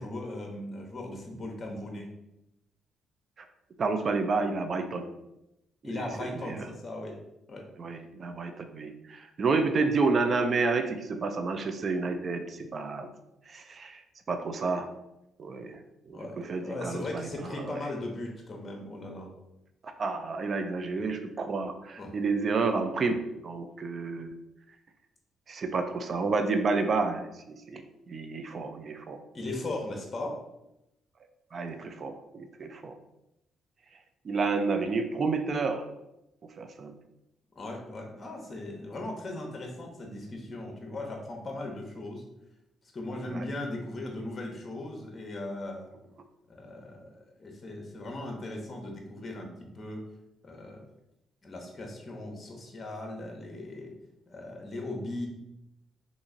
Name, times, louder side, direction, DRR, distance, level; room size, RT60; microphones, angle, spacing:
voice 1, 0.0-2.1 5.8-7.2 7.5-7.6 16.1-19.3 22.0-22.1 29.3-30.4 37.6-42.2 42.9-45.9 46.5-50.0 50.4-50.8 51.4-53.9 54.3-55.3, left 2 dB, 35° left, 1 dB, 0.8 m, -38 dB
voice 2, 3.8-5.1 5.8-6.7 7.8-13.1 13.5-14.0 14.3-14.9 15.4-15.8 16.1-17.8 19.8-24.3 25.5-29.2 31.5-33.0 34.2-35.8 36.6-36.9 43.3-43.4, right 4 dB, 45° right, 7 dB, 0.4 m, -30 dB
3.0 x 2.6 x 3.7 m, 0.88 s
cardioid pair, 90°, 0 cm